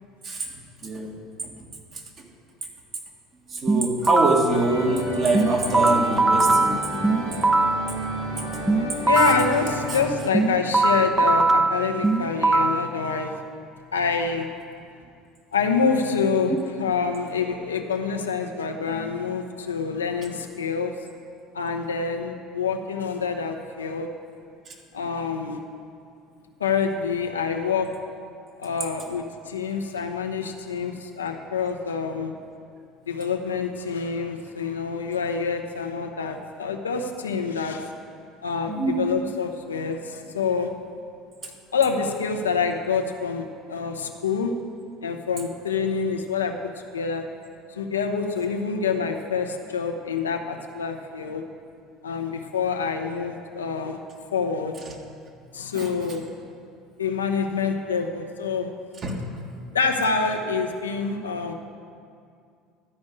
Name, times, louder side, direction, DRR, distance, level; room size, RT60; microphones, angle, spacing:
voice 1, 1.4-2.3 3.5-6.8 24.7-24.8 38.7-39.1 55.7-56.0 59.0-59.1, right 3 dB, 40° right, 0 dB, 1.8 m, -25 dB
sound 1, 3.7-4.5 5.3-7.9 8.7-9.5 10.3-12.9, right 3 dB, 15° right, 0.5 m, -21 dB
sound 2, 4.5-10.1, left 1 dB, 85° right, 2.0 m, -31 dB
voice 2, 9.1-13.3 13.9-14.5 15.5-20.9 21.5-24.1 24.9-25.6 26.6-27.9 28.6-32.3 33.1-37.9 38.4-40.7 41.7-44.5 45.0-46.5 46.9-47.2 47.7-51.4 52.0-54.0 54.3-54.7 55.5-56.2 57.0-58.7 59.7-61.5, left 5 dB, 90° left, 4 dB, 0.7 m, -26 dB
12.0 x 5.3 x 8.1 m, 2.3 s
hypercardioid pair, 70°, 0 cm